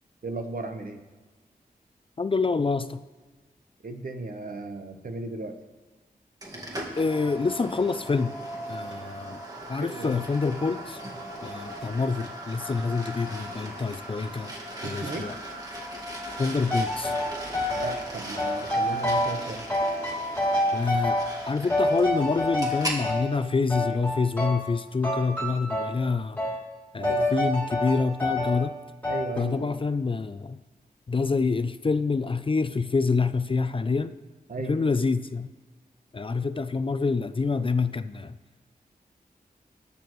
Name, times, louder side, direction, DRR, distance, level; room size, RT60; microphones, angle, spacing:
voice 1, 0.2-1.0 3.8-5.5 9.8-10.2 14.8-15.3 17.7-19.6 27.0-27.4 29.1-29.7 34.5-34.8, right 3 dB, 60° right, 6 dB, 1.1 m, -35 dB
voice 2, 2.2-3.0 7.0-8.3 8.7-9.4 9.7-11.0 11.4-14.5 14.8-15.3 16.4-17.1 20.7-21.2 21.5-26.4 26.9-28.8 29.4-30.6 31.1-34.1 34.7-35.5 36.1-38.4, left 4 dB, 35° left, 12 dB, 0.4 m, -26 dB
sound 1, 6.4-23.0, right 1 dB, 25° right, 1.8 m, -38 dB
sound 2, 16.7-17.9 18.4-19.4 19.7-21.4 21.7-23.3 23.7-24.8 25.0-26.0 26.4-26.6 27.0-28.6 29.0-29.4, left 1 dB, 10° left, 3.0 m, -27 dB
20.5 x 6.9 x 3.1 m, 1.3 s
wide cardioid pair, 90°, 16 cm